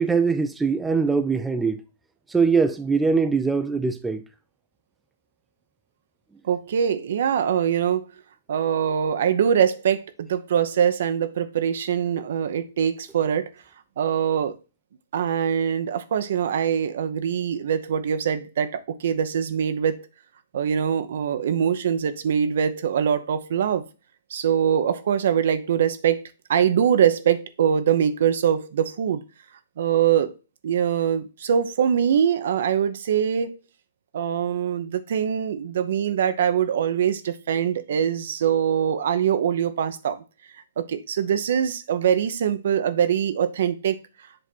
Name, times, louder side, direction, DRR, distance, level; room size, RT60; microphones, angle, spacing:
voice 1, 0.0-1.8 2.3-4.2, right 4 dB, 10° right, 0.6 m, -22 dB
voice 2, 6.4-8.1 8.5-13.5 14.0-14.6 15.1-20.0 20.5-23.8 24.3-29.2 29.8-30.3 30.6-33.6 34.1-40.2 40.8-44.0, right 8 dB, 60° right, 0.8 m, -23 dB
7.6 x 3.3 x 4.1 m
figure-of-eight pair, 120°, 0 cm